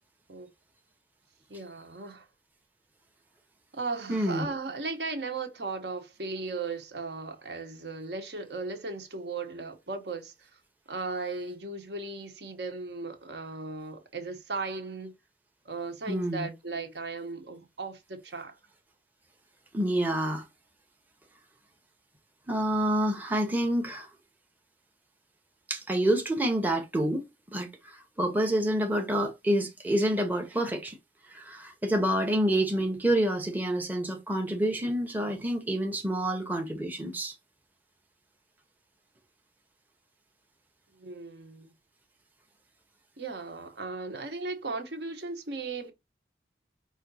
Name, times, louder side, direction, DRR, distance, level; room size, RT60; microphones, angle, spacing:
voice 1, 1.5-2.3 3.7-10.5 10.9-15.1 15.6-18.6 40.9-41.7 43.2-45.9, right 3 dB, 70° right, 1.1 m, -36 dB
voice 2, 4.1-4.5 16.1-16.5 19.7-20.5 22.5-24.1 25.7-31.0 31.3-37.4, right 1 dB, 10° right, 0.6 m, -28 dB
5.0 x 2.6 x 4.0 m
head